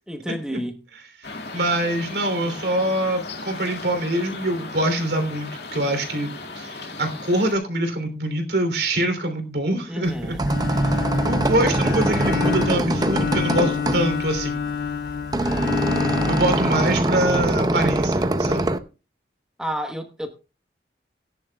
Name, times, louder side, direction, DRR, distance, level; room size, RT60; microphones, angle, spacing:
voice 1, 0.1-0.8 9.9-10.4 15.4-15.9 19.6-20.3, equal, 5° right, 1.0 m, -31 dB
sound 1, 1.2-7.6, left 3 dB, 75° left, 2.0 m, -36 dB
voice 2, 1.5-6.3 6.6-10.4 10.6-14.6 16.3-18.7, right 1 dB, 75° right, 3.1 m, -24 dB
sound 2, 10.1-18.8, right 1 dB, 20° right, 0.6 m, -23 dB
Bowed string instrument, 10.4-17.6, left 6 dB, 60° left, 0.4 m, -28 dB
17.5 x 10.5 x 2.3 m
head